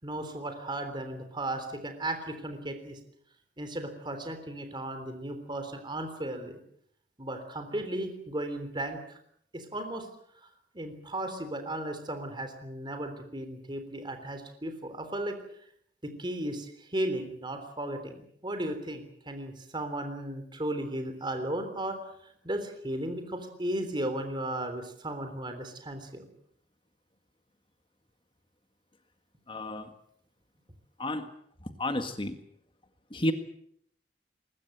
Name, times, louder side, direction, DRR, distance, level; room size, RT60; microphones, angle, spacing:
voice 1, 0.0-3.0 3.6-6.6 7.2-9.2 9.5-10.1 10.7-15.4 16.0-22.1 22.4-26.3, right 1 dB, 25° right, 7 dB, 3.5 m, -35 dB
voice 2, 29.5-29.9 31.0-31.3 31.8-32.4 33.1-33.3, left 1 dB, 30° left, 8 dB, 1.8 m, -31 dB
22.0 x 20.5 x 8.0 m, 0.68 s
head